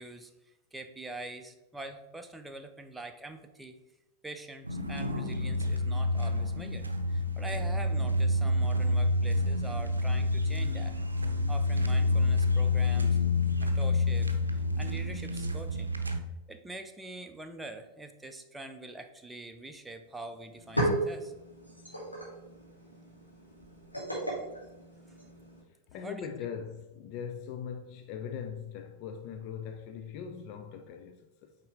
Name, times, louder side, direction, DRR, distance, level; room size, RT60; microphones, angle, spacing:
voice 1, 0.0-3.8 4.2-10.9 11.5-13.2 13.6-15.9 16.5-21.3 21.9-22.0 26.0-26.3, right 2 dB, 5° right, 0.6 m, -44 dB
sound 1, 4.6-16.2, left 2 dB, 80° right, 0.6 m, -28 dB
sound 2, 20.0-20.1 20.4-25.6, right 1 dB, 85° left, 2.1 m, -35 dB
voice 2, 25.9-31.6, left 7 dB, 40° left, 0.4 m, -40 dB
8.5 x 3.7 x 3.4 m
figure-of-eight pair, 90°, 0 cm